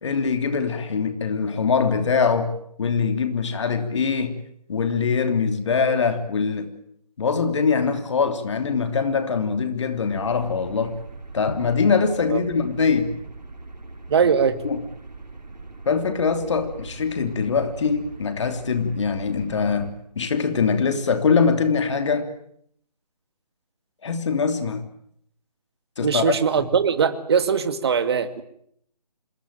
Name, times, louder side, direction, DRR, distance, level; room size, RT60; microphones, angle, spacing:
voice 1, 0.0-4.4 4.7-6.7 7.2-11.0 11.3-13.1 14.6-14.8 15.8-22.3 24.0-24.8 26.0-26.3, left 5 dB, 45° left, 8 dB, 3.1 m, -23 dB
sound 1, 10.1-19.9, right 3 dB, 80° right, 5.0 m, -41 dB
voice 2, 14.1-14.6 26.0-28.4, right 6 dB, 40° right, 10 dB, 2.3 m, -21 dB
26.5 x 22.0 x 9.0 m, 0.70 s
figure-of-eight pair, 155°, 21 cm